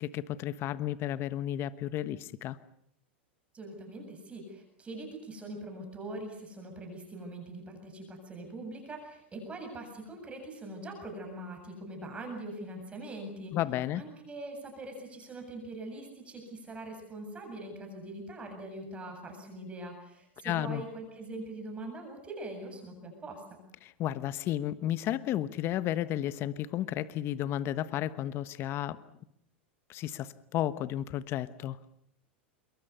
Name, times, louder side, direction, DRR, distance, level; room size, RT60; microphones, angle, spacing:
voice 1, 0.0-2.6 13.5-14.0 20.4-20.8 23.8-29.0 29.9-31.8, left 12 dB, 40° left, 15 dB, 1.1 m, -33 dB
voice 2, 3.5-13.6 13.9-23.6, right 2 dB, 20° right, 3 dB, 7.7 m, -42 dB
25.5 x 22.5 x 6.9 m, 0.76 s
hypercardioid pair, 115°, 6 cm